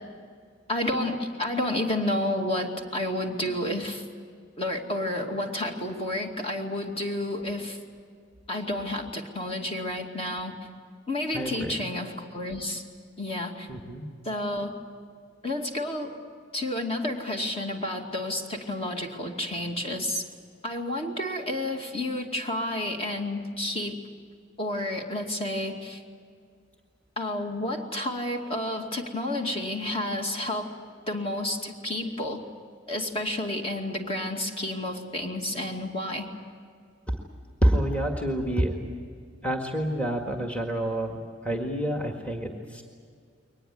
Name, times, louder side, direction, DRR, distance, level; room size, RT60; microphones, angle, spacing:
voice 1, 0.7-4.0 4.6-7.8 8.5-10.6 11.1-12.8 13.2-13.7 14.2-14.7 15.4-16.2 16.5-20.3 20.6-24.0 24.6-26.0 27.2-30.7 31.1-32.4 32.9-36.3, left 1 dB, 30° left, 2 dB, 2.4 m, -30 dB
voice 2, 11.3-11.7 13.7-14.1 37.1-37.2 37.6-38.8 39.4-42.8, right 1 dB, 5° left, 2 dB, 1.8 m, -27 dB
23.0 x 19.5 x 9.7 m, 2.1 s
head